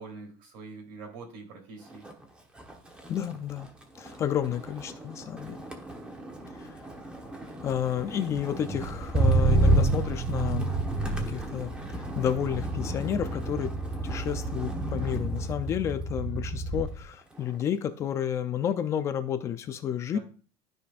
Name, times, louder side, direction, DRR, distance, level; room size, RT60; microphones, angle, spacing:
voice 1, 0.0-2.1 13.2-13.5 20.1-20.2, right 4 dB, 60° right, 2 dB, 3.3 m, -44 dB
Motor vehicle (road), 1.9-2.2 2.6-17.0 17.4-17.8, right 2 dB, 10° right, 1.1 m, -30 dB
voice 2, 3.1-3.7 4.0-5.7 6.6-6.7 7.6-10.7 11.2-11.7 12.2-13.7 14.0-20.2, left 9 dB, 25° left, 10 dB, 0.4 m, -31 dB
13.0 x 5.1 x 2.5 m, 0.38 s
cardioid pair, 165°, 10 cm